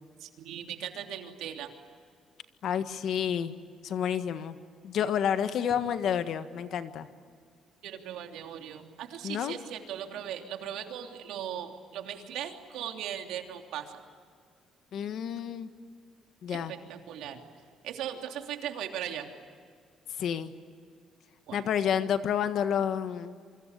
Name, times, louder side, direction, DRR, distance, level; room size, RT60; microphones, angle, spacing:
voice 1, 0.2-1.7 7.8-13.8 16.5-17.4 17.8-19.3 21.5-21.6, right 10 dB, 75° right, 4 dB, 3.1 m, -38 dB
voice 2, 2.6-3.5 3.8-4.6 4.8-7.1 9.2-9.5 14.9-15.7 16.4-16.7 20.2-20.5 21.5-23.4, left 8 dB, 50° left, 9 dB, 1.6 m, -29 dB
28.0 x 25.5 x 8.3 m, 2.1 s
cardioid pair, 170°, 0 cm